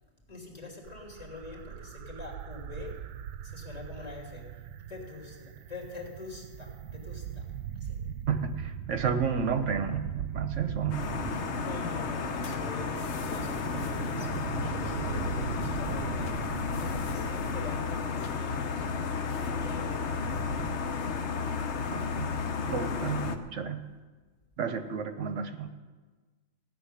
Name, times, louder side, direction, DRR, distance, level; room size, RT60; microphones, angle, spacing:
voice 1, 0.3-3.0 3.4-4.6 4.9-7.5 7.7-8.0 11.6-14.3 14.6-16.3 16.8-19.0 19.4-20.4, left 3 dB, 25° left, -1 dB, 2.9 m, -44 dB
sound 1, 0.8-20.8, right 9 dB, 90° right, 1.1 m, -40 dB
voice 2, 8.3-11.0 21.9-22.3 22.6-23.8 24.6-25.7, right 6 dB, 55° right, 9 dB, 1.1 m, -31 dB
sound 2, 10.9-23.4, left 5 dB, 55° left, 1.0 m, -33 dB
16.0 x 7.0 x 9.8 m, 1.4 s
omnidirectional pair, 1.6 m